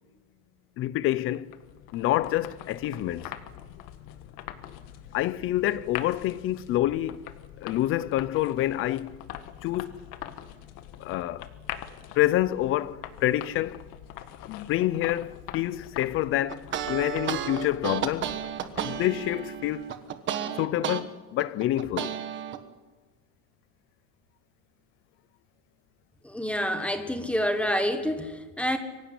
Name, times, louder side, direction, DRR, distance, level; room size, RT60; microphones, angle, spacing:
voice 1, 0.8-1.5 1.9-3.3 5.1-7.2 7.6-9.2 9.6-10.0 11.0-11.5 12.1-13.8 14.4-16.6 16.9-18.3 18.8-19.9 20.6-22.2, left 14 dB, 35° left, 0.7 m, -27 dB
sound 1, 1.2-20.2, left 12 dB, 55° left, 1.7 m, -43 dB
sound 2, 16.5-21.0 21.4-22.6, right 10 dB, 30° right, 1.4 m, -32 dB
voice 2, 26.2-28.8, equal, 5° left, 1.4 m, -28 dB
24.0 x 16.0 x 9.8 m
cardioid pair, 175°, 37 cm